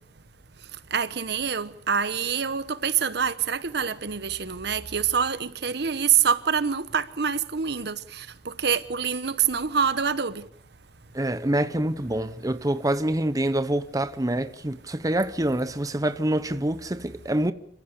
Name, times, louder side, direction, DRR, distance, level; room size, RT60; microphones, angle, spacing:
voice 1, 0.9-10.5, right 7 dB, 65° right, 1.1 m, -26 dB
voice 2, 11.1-17.5, right 1 dB, 20° right, 0.8 m, -26 dB
27.5 x 15.5 x 8.3 m
head